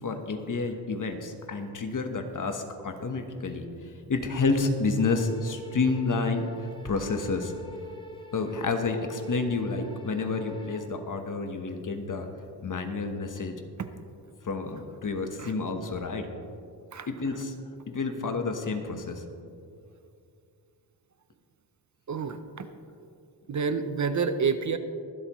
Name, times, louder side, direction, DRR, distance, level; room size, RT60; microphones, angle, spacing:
voice 1, 0.0-6.5 6.8-7.5 8.3-12.3 12.6-13.6 14.4-16.3 17.1-17.5 17.9-19.2, left 3 dB, 45° left, 6 dB, 1.2 m, -29 dB
sound 1, 5.0-10.9, left 2 dB, 10° left, 1.0 m, -45 dB
voice 2, 22.1-22.7 23.5-24.8, right 5 dB, 45° right, 10 dB, 0.6 m, -28 dB
23.5 x 8.1 x 3.1 m, 2.4 s
wide cardioid pair, 120°, 42 cm